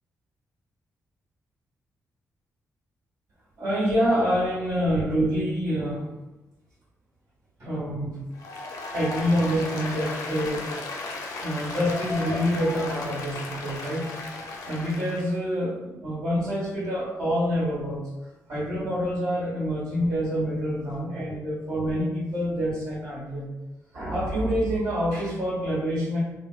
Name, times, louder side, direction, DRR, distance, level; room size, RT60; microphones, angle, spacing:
voice 1, 3.6-6.1 7.6-8.2 8.9-10.8 11.4-14.1 14.6-18.1 18.5-23.5 23.9-26.2, equal, 85° right, -8 dB, 1.5 m, -26 dB
Applause, 8.3-15.4, left 3 dB, 85° left, 0.5 m, -35 dB
3.6 x 2.5 x 2.2 m, 1.1 s
wide cardioid pair, 155°, 6 cm